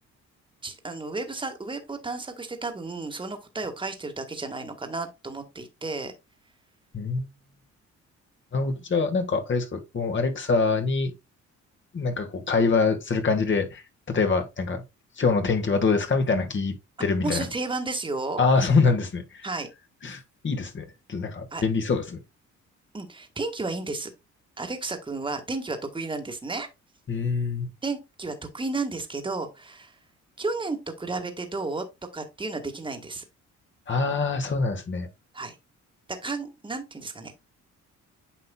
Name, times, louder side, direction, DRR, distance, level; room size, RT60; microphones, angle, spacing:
voice 1, 0.6-6.1 17.2-18.4 19.4-19.7 21.5-21.6 22.9-24.1 24.6-26.7 27.8-29.9 30.4-31.8 32.1-33.2 35.3-35.6 36.1-37.4, right 3 dB, 15° right, 1.6 m, -32 dB
voice 2, 6.9-7.3 8.5-11.1 11.9-13.8 14.1-14.8 15.2-16.7 17.0-17.4 18.4-19.5 20.0-22.2 27.1-27.7 33.9-35.1, left 4 dB, 40° left, 1.7 m, -24 dB
9.1 x 5.4 x 2.3 m
cardioid pair, 90°, 30 cm